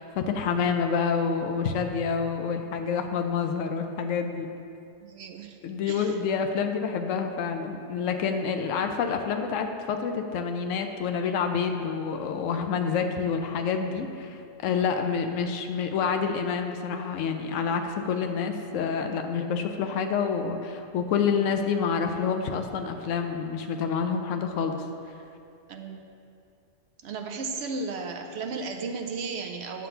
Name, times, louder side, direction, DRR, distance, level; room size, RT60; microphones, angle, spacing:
voice 1, 0.0-4.5 5.6-24.8, left 6 dB, 80° left, 5 dB, 1.0 m, -28 dB
voice 2, 5.0-5.6 5.9-6.1 14.9-15.2 25.7-26.0 27.0-29.9, right 4 dB, 65° right, 4 dB, 0.8 m, -35 dB
9.1 x 3.8 x 6.8 m, 2.5 s
omnidirectional pair, 1.3 m